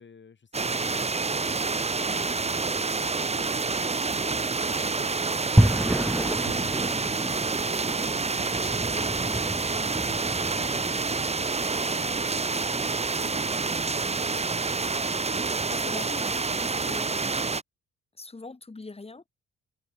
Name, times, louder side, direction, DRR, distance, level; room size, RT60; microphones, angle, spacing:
voice 1, 0.0-3.2 3.6-5.6 8.8-12.5 13.1-14.6, left 5 dB, 40° left, 6.6 m, -53 dB
sound 1, 0.5-17.6, right 4 dB, 20° right, 1.3 m, -28 dB
sound 2, 3.1-10.2, right 15 dB, 85° right, 3.7 m, -48 dB
sound 3, 5.6-15.8, right 1 dB, 5° right, 1.9 m, -31 dB
voice 2, 15.4-17.4 18.2-19.2, left 3 dB, 20° left, 3.1 m, -42 dB
open air
cardioid pair, 90°, 30 cm